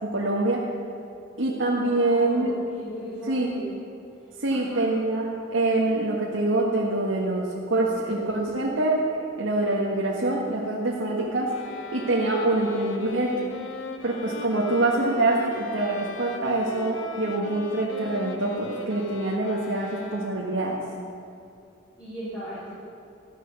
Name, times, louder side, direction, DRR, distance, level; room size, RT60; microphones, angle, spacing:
voice 1, 0.0-0.6 1.4-2.5 3.3-3.5 4.4-8.9 9.4-11.5 11.9-13.4 14.0-20.7, right 2 dB, 70° right, -4 dB, 1.6 m, -25 dB
voice 2, 1.8-3.7 4.5-4.9 22.0-22.7, equal, 20° left, -12 dB, 4.1 m, -38 dB
sound 1, 11.5-20.7, left 2 dB, 75° left, 1.0 m, -39 dB
13.5 x 10.5 x 7.0 m, 2.5 s
head